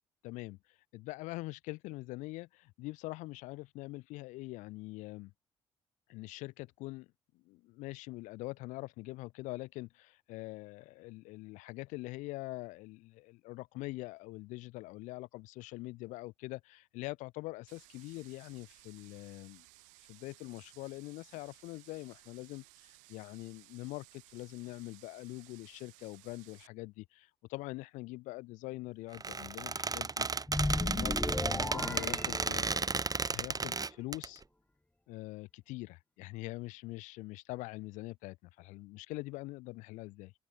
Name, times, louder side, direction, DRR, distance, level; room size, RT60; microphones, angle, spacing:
voice 1, 0.2-5.3 6.1-7.1 7.3-19.6 20.1-30.3 30.7-33.0 33.2-34.4 35.1-40.3, left 21 dB, 75° left, 1.4 m, -44 dB
sound 1, 17.7-26.7, right 26 dB, 80° right, 2.8 m, -60 dB
Squeak, 29.1-34.3, right 4 dB, 30° right, 1.3 m, -34 dB
sound 2, 30.5-33.1, left 1 dB, 10° left, 1.2 m, -35 dB
hypercardioid pair, 45°, 13 cm